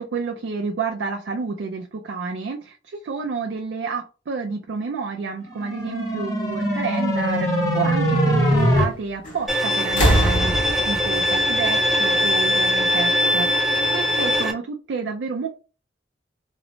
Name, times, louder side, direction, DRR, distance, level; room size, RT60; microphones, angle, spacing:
voice 1, 0.0-13.5 13.9-15.5, right 5 dB, 80° right, 0.4 m, -30 dB
sound 1, 5.5-8.8, equal, 20° left, 0.9 m, -21 dB
sound 2, 9.2-9.5 9.8-12.6 13.7-13.8, right 1 dB, 45° left, 1.1 m, -23 dB
Bowed string instrument, 9.5-14.5, left 1 dB, ahead, 0.4 m, -21 dB
3.0 x 2.0 x 2.6 m
head